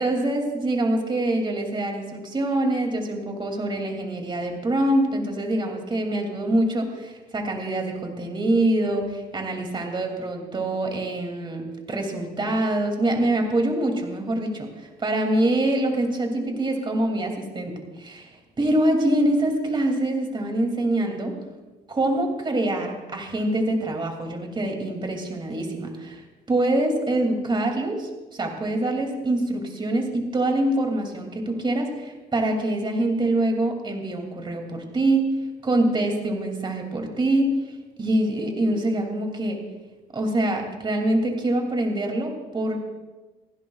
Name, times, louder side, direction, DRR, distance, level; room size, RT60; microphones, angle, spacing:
voice 1, 0.0-11.6 11.9-18.3 18.6-21.4 21.9-26.2 26.5-35.3 35.6-37.5 38.0-39.6 40.1-42.8, right 1 dB, 30° right, 3 dB, 2.6 m, -25 dB
28.5 x 10.5 x 2.4 m, 1.2 s
cardioid pair, 100°, 16 cm